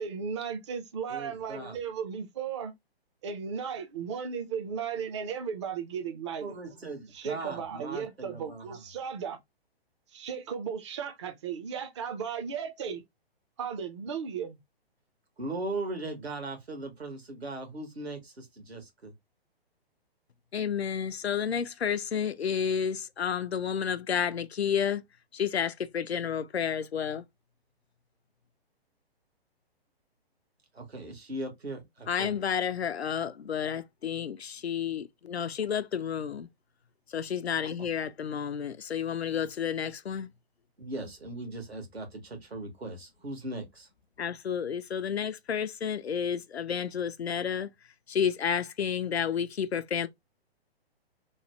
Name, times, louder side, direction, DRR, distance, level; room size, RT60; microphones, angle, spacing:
voice 1, 0.0-2.7 3.2-6.5 7.1-9.4 10.1-13.0 13.6-14.6, right 7 dB, 30° right, 0.4 m, -35 dB
voice 2, 1.1-1.7 6.4-8.8 15.4-19.1 30.7-32.3 40.8-43.9, right 2 dB, 75° right, 1.3 m, -39 dB
voice 3, 20.5-25.0 25.3-27.2 32.1-36.5 37.1-40.3 44.2-47.7 48.1-50.1, left 7 dB, 80° left, 0.5 m, -31 dB
3.0 x 2.1 x 2.9 m
figure-of-eight pair, 125°, 31 cm